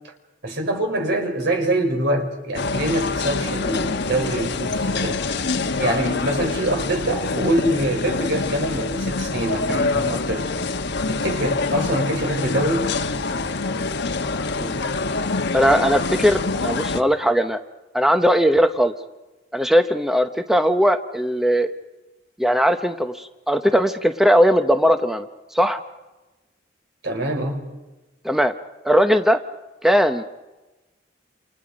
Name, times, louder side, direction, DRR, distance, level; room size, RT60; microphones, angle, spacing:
voice 1, 0.4-5.2 5.8-10.5 11.1-12.9 27.0-27.7, right 1 dB, 65° right, 4 dB, 4.9 m, -24 dB
sound 1, 2.5-17.0, left 3 dB, 65° left, 1.2 m, -25 dB
voice 2, 15.5-17.6 17.9-18.9 19.5-21.7 22.4-25.3 25.5-25.8 28.2-28.5 28.8-29.4 29.8-30.2, equal, ahead, 7 dB, 0.8 m, -19 dB
29.0 x 28.5 x 5.2 m, 1.1 s
head